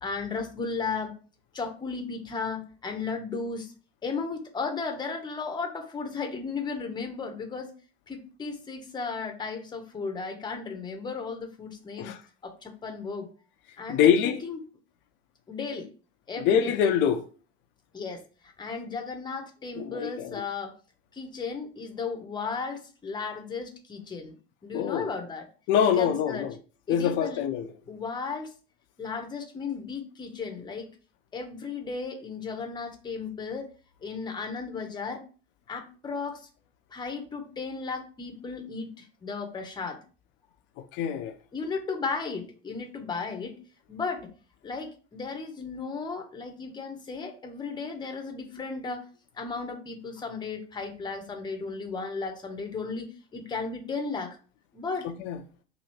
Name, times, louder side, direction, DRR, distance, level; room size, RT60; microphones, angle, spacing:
voice 1, 0.0-1.2 1.5-3.7 4.0-7.7 8.1-12.1 12.4-13.3 13.8-14.6 15.5-15.9 16.3-16.8 17.9-18.2 18.6-20.8 21.1-24.3 24.6-25.5 25.8-26.5 26.9-27.4 27.9-28.5 29.0-30.9 31.3-33.7 34.0-35.2 35.7-36.4 36.9-40.0 41.5-43.6 43.9-44.3 44.6-49.0 49.4-53.1 53.3-54.4 54.7-55.1, left 4 dB, 15° left, 0.8 m, -35 dB
voice 2, 13.9-14.4 16.4-17.3 19.8-20.4 24.7-25.1 25.7-26.6 26.9-27.7 40.9-41.4 55.0-55.4, left 8 dB, 40° left, 0.6 m, -24 dB
3.0 x 2.8 x 4.2 m
figure-of-eight pair, 80°, 30 cm